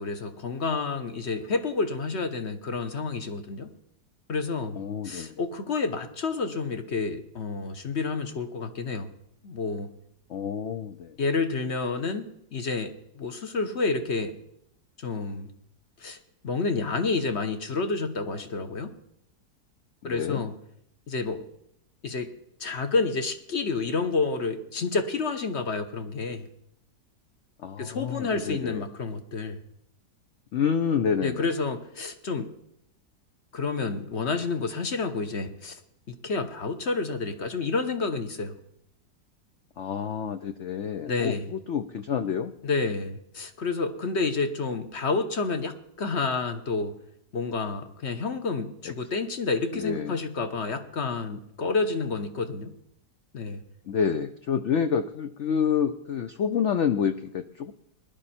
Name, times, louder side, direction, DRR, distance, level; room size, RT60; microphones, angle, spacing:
voice 1, 0.0-3.7 4.3-4.8 5.0-9.1 9.4-9.9 11.2-14.4 15.0-15.5 16.0-16.2 16.4-18.9 20.0-20.5 21.1-21.4 22.0-22.3 22.6-26.5 27.8-29.6 31.2-32.5 33.5-35.8 36.1-38.5 41.0-41.5 42.6-46.9 47.3-52.7 53.3-53.6, left 4 dB, 45° left, 8 dB, 1.1 m, -29 dB
voice 2, 4.8-5.4 10.3-11.2 20.0-20.4 27.6-28.9 30.5-31.5 39.8-42.5 49.7-50.2 53.9-57.7, left 7 dB, 80° left, 9 dB, 0.6 m, -28 dB
19.5 x 11.0 x 4.3 m, 0.76 s
omnidirectional pair, 2.0 m